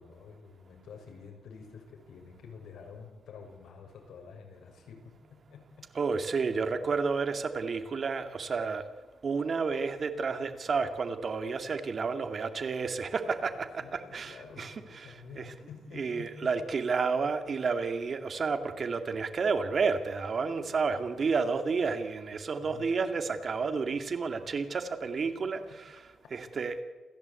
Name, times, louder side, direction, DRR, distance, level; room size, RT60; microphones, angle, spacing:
voice 1, 0.0-5.9 13.5-16.5 20.6-20.8 22.6-22.9 24.5-24.6 25.4-25.8, left 5 dB, 80° left, 3 dB, 5.9 m, -49 dB
voice 2, 5.9-8.8 9.2-15.5 15.9-26.8, right 4 dB, 45° right, 7 dB, 2.3 m, -31 dB
28.5 x 15.5 x 8.4 m, 1.3 s
cardioid pair, 120°, 0 cm